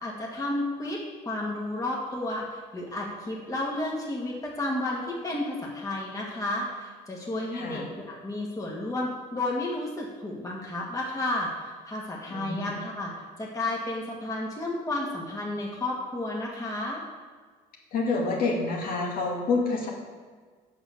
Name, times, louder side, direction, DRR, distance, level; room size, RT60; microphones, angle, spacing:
voice 1, 0.0-13.1 13.4-17.0, left 2 dB, 20° left, -3 dB, 1.9 m, -32 dB
voice 2, 7.5-7.9 12.3-12.7 17.9-19.9, left 3 dB, 60° left, -2 dB, 2.3 m, -28 dB
7.9 x 6.2 x 6.9 m, 1.5 s
cardioid pair, 110°, 17 cm